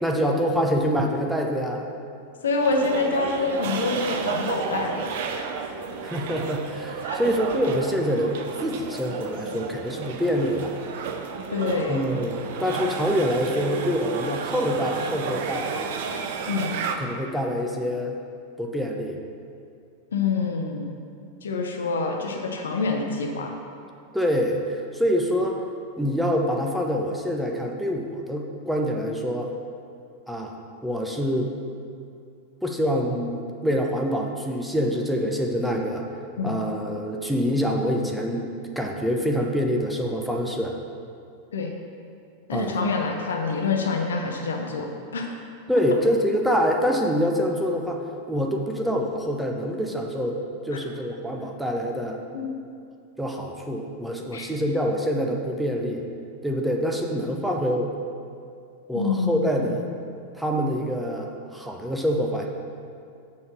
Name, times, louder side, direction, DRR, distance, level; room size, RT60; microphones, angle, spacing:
voice 1, 0.0-1.9 6.0-8.4 8.6-10.7 11.9-15.9 17.0-18.2 18.6-19.2 24.1-25.6 26.0-29.5 30.3-30.5 30.8-31.5 32.6-36.1 36.4-38.5 38.8-40.8 42.5-42.8 45.7-48.0 48.3-50.4 50.6-52.2 53.2-56.0 56.4-57.9 58.9-59.9 60.3-62.5, equal, ahead, 0 dB, 0.7 m, -25 dB
voice 2, 2.4-5.1 7.0-7.2 11.5-12.0 16.4-16.7 20.1-20.9 21.4-23.5 36.4-36.6 41.5-41.7 42.5-45.3 50.7-50.8 52.3-52.5 54.3-54.5 58.9-59.6, left 4 dB, 65° left, 2 dB, 0.8 m, -26 dB
sound 1, 2.6-17.0, right 5 dB, 50° right, 0.6 m, -32 dB
6.7 x 4.2 x 6.6 m, 2.4 s
figure-of-eight pair, 90°, 0 cm